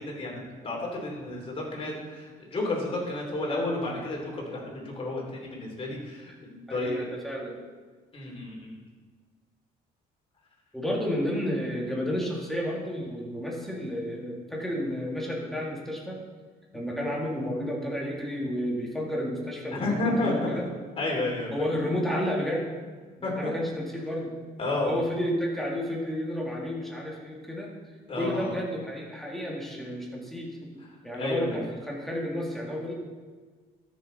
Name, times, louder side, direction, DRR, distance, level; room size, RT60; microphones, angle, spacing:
voice 1, 0.0-7.1 8.1-8.8 16.7-16.8 19.7-20.5 21.0-21.5 23.2-23.5 24.6-24.9 28.1-28.6 30.8-31.7, left 2 dB, 35° left, -2 dB, 3.4 m, -31 dB
voice 2, 6.7-7.6 10.7-16.2 16.7-20.7 21.5-22.7 23.2-24.3 24.8-27.7 28.1-32.9, equal, ahead, -3 dB, 2.3 m, -31 dB
13.5 x 6.6 x 4.1 m, 1.5 s
cardioid pair, 110°, 17 cm